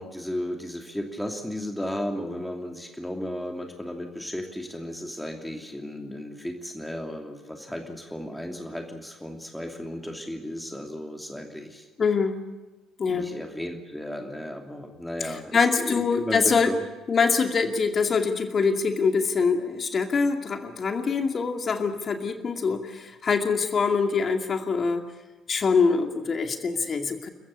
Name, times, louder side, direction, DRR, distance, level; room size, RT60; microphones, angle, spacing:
voice 1, 0.0-11.9 13.1-16.8, left 1 dB, 5° left, 3 dB, 2.8 m, -34 dB
voice 2, 12.0-12.4 13.0-13.3 15.2-16.7 17.1-25.0 25.5-27.3, left 5 dB, 35° left, 6 dB, 2.4 m, -24 dB
28.5 x 15.0 x 8.6 m, 1.2 s
figure-of-eight pair, 50°, 0 cm